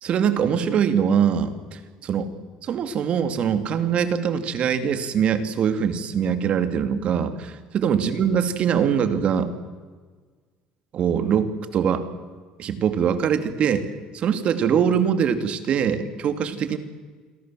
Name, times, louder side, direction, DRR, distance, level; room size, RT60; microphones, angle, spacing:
voice 1, 0.0-2.3 2.6-9.5 10.9-12.1 12.6-13.9 14.1-16.8, right 7 dB, 50° right, 10 dB, 2.5 m, -23 dB
28.5 x 22.0 x 7.6 m, 1.5 s
cardioid pair, 115°, 3 cm